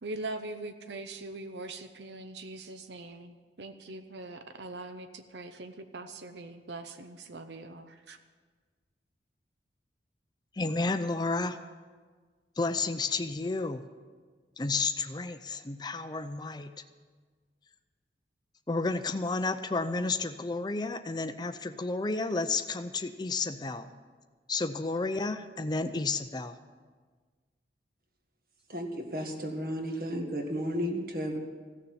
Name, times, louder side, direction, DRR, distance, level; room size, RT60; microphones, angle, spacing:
voice 1, 0.0-8.2, right 2 dB, 75° right, 8 dB, 0.8 m, -42 dB
voice 2, 10.5-11.6 12.6-13.8 14.6-16.7 18.7-23.9 24.5-26.6, left 3 dB, 25° left, 10 dB, 0.5 m, -31 dB
voice 3, 28.7-31.4, equal, 55° right, 3 dB, 1.8 m, -33 dB
15.5 x 6.9 x 9.1 m, 1.5 s
head